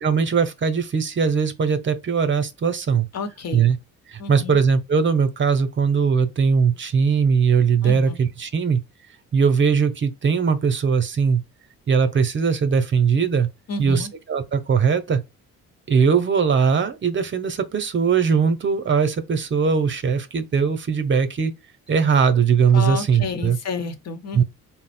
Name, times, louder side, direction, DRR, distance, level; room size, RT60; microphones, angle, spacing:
voice 1, 0.0-3.1 3.5-3.8 4.1-8.8 9.3-11.4 11.9-13.5 13.8-15.2 15.9-21.5 21.9-23.6 24.3-24.4, right 6 dB, 40° right, 0.8 m, -20 dB
voice 2, 3.1-3.7 4.2-4.6 7.8-8.2 13.7-14.1 22.7-24.4, left 4 dB, 55° left, 1.0 m, -30 dB
4.1 x 2.1 x 4.2 m
cardioid pair, 90°, 30 cm